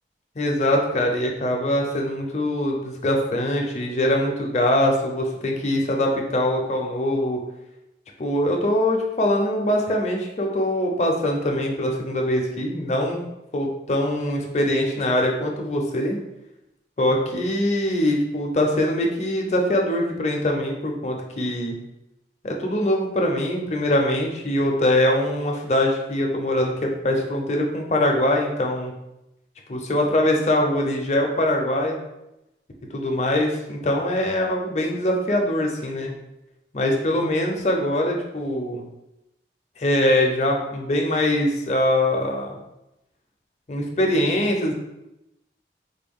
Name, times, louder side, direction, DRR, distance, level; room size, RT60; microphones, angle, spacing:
voice 1, 0.4-7.4 8.2-13.2 13.5-16.2 17.0-21.7 22.4-28.9 29.7-32.0 32.9-36.1 36.7-38.8 39.8-42.6 43.7-44.7, left 1 dB, 40° left, 1 dB, 0.5 m, -23 dB
3.8 x 2.2 x 3.5 m, 0.90 s
head